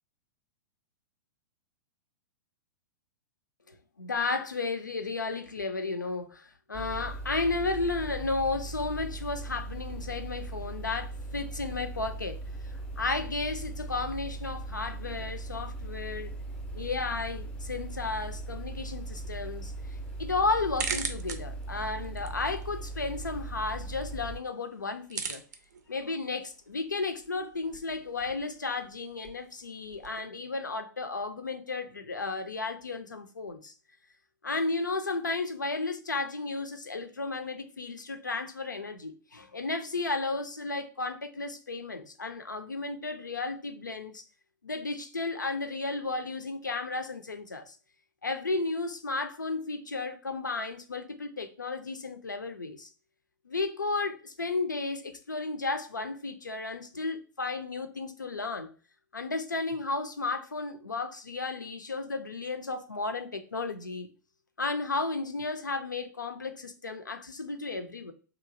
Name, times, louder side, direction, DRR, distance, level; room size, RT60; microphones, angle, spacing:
voice 1, 3.7-12.4 13.0-16.3 16.7-19.7 20.2-25.4 25.9-33.7 34.4-44.2 44.6-47.8 48.2-52.9 53.5-58.7 59.1-64.1 64.6-68.1, left 3 dB, 90° left, 0.4 m, -33 dB
sound 1, 6.7-24.4, right 2 dB, 10° left, 0.4 m, -39 dB
sound 2, 19.0-30.2, right 5 dB, 70° right, 0.5 m, -43 dB
2.9 x 2.3 x 2.5 m
figure-of-eight pair, 105°, 10 cm